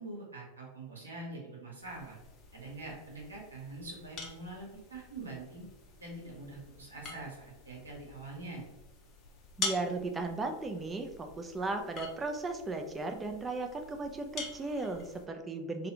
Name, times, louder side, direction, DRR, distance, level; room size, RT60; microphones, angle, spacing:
voice 1, 0.0-2.2 2.5-5.6 6.0-8.7, right 2 dB, 85° right, -3 dB, 0.9 m, -44 dB
sound 1, 1.8-15.3, left 4 dB, 40° left, 0.6 m, -46 dB
voice 2, 9.6-15.9, right 3 dB, 20° right, 4 dB, 0.4 m, -36 dB
2.4 x 2.3 x 2.8 m, 1.0 s
hypercardioid pair, 90°, 0 cm